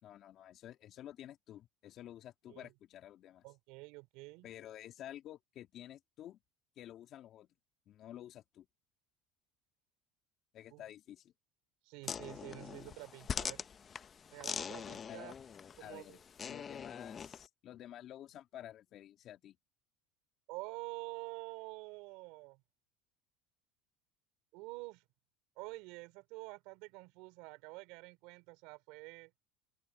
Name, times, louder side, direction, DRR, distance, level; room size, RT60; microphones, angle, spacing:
voice 1, 0.0-3.4 4.4-6.4 6.8-7.5 7.9-8.7 10.5-11.3 15.1-15.4 15.8-16.2 16.5-19.6, left 12 dB, 45° left, 2.8 m, -51 dB
voice 2, 3.4-4.5 10.7-10.8 11.9-13.7 14.3-15.3 15.8-16.2 20.5-22.6 24.5-25.0 25.6-29.3, right 25 dB, 70° right, 4.0 m, -48 dB
sound 1, 12.0-17.5, left 7 dB, 30° left, 0.7 m, -43 dB
open air
supercardioid pair, 130°, 0 cm